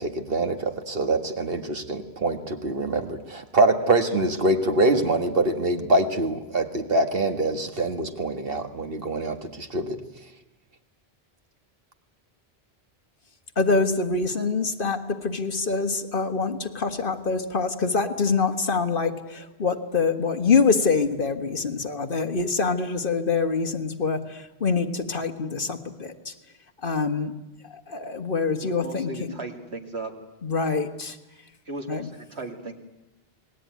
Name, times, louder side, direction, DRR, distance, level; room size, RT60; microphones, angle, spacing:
voice 1, 0.0-10.0, right 2 dB, 60° right, 6 dB, 2.0 m, -24 dB
voice 2, 13.6-26.3 26.8-27.3 27.9-29.4 30.4-31.2 31.9-32.1, left 4 dB, 55° left, 7 dB, 1.7 m, -25 dB
voice 3, 28.6-30.1 31.7-32.7, right 3 dB, 80° right, 4 dB, 2.8 m, -36 dB
27.5 x 20.0 x 9.5 m, 0.99 s
omnidirectional pair, 1.1 m